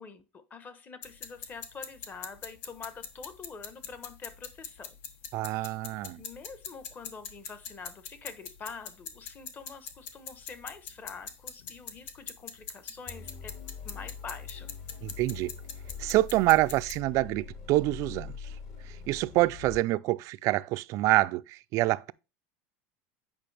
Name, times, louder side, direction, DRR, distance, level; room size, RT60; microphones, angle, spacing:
voice 1, 0.0-5.0 6.2-13.5 13.8-14.8, left 5 dB, 25° left, 1.0 m, -46 dB
sound 1, 1.0-16.9, left 7 dB, 70° left, 1.2 m, -44 dB
voice 2, 5.3-6.2 15.0-15.5 16.0-18.5 18.9-22.1, right 18 dB, 50° right, 0.4 m, -26 dB
sound 2, 13.1-19.8, left 6 dB, 50° left, 2.1 m, -43 dB
8.9 x 5.3 x 3.3 m
supercardioid pair, 130°, 7 cm